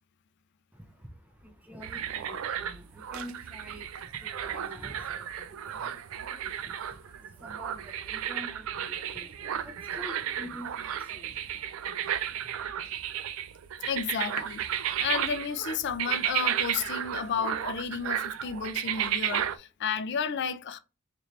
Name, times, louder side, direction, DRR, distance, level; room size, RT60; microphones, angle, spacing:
voice 1, 0.7-12.9, equal, 5° right, 0.5 m, -48 dB
sound 1, 1.8-19.6, right 10 dB, 75° right, 0.3 m, -33 dB
voice 2, 13.9-14.7 15.0-20.8, left 6 dB, 55° left, 0.4 m, -32 dB
4.1 x 2.5 x 3.2 m
head